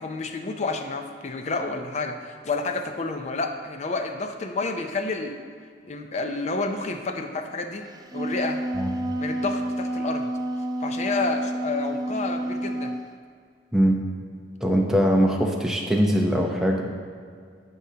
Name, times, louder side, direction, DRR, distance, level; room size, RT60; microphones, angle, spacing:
voice 1, 0.0-5.4 5.8-7.9 8.1-8.6 9.2-10.3 10.8-12.9, left 3 dB, 40° left, 6 dB, 0.5 m, -30 dB
Wind instrument woodwind instrument, 7.9-13.1, right 1 dB, 20° right, 0.3 m, -29 dB
voice 2, 14.6-16.8, equal, 5° right, -1 dB, 0.7 m, -21 dB
11.5 x 5.4 x 2.8 m, 2.1 s
head